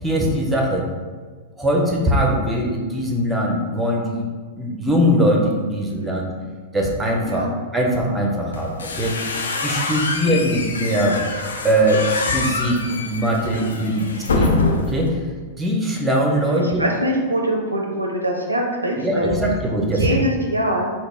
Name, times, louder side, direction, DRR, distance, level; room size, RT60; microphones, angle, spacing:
voice 1, 0.0-0.9 1.6-4.2 4.6-6.2 6.7-7.5 7.7-9.2 9.6-11.2 11.6-12.8 13.1-14.1 14.3-15.2 15.6-16.8 19.0-20.2, equal, 10° right, -1 dB, 0.7 m, -21 dB
sound 1, 8.5-15.1, left 3 dB, 70° left, 0.4 m, -25 dB
voice 2, 16.5-19.4 19.9-20.9, right 1 dB, 85° right, 1 dB, 0.4 m, -24 dB
3.9 x 2.5 x 3.5 m, 1.5 s
figure-of-eight pair, 95°, 0 cm